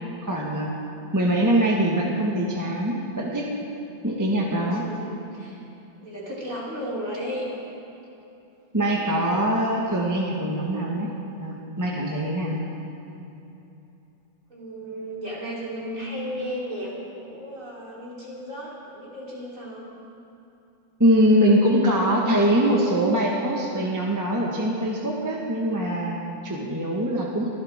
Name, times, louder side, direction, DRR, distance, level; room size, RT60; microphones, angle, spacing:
voice 1, 0.2-0.7 1.1-3.5 4.0-4.8 8.7-11.1 11.4-12.6 21.0-27.5, right 1 dB, 10° right, -3 dB, 1.4 m, -23 dB
voice 2, 4.6-5.6 6.0-7.5 14.5-19.9, equal, 45° right, -6 dB, 4.2 m, -34 dB
24.0 x 15.5 x 3.7 m, 2.9 s
omnidirectional pair, 2.0 m